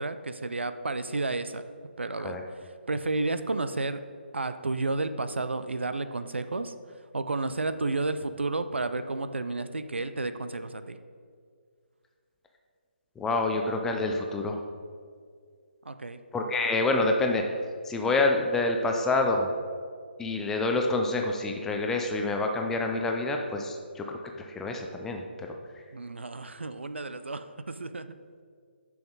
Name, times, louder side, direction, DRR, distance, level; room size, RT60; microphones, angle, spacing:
voice 1, 0.0-1.6 2.0-4.0 4.3-11.0 15.8-16.2 25.9-28.2, right 3 dB, 80° right, 11 dB, 0.5 m, -32 dB
voice 2, 13.2-14.6 16.3-17.4 17.9-19.5 20.2-25.6, left 2 dB, 5° left, 2 dB, 0.5 m, -27 dB
10.5 x 6.0 x 3.9 m, 2.1 s
figure-of-eight pair, 145°, 6 cm